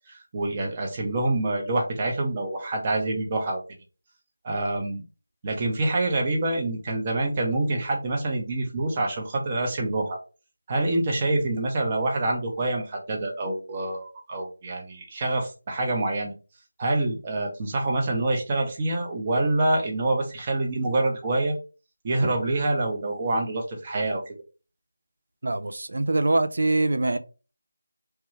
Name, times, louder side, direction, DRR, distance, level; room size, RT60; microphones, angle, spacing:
voice 1, 0.1-3.6 4.4-5.0 5.4-10.2 10.7-16.3 16.8-21.6 22.0-24.2, right 2 dB, 25° right, 0.7 m, -26 dB
voice 2, 25.4-27.2, right 2 dB, 60° right, 0.4 m, -23 dB
3.0 x 2.2 x 3.1 m
figure-of-eight pair, 165°, 0 cm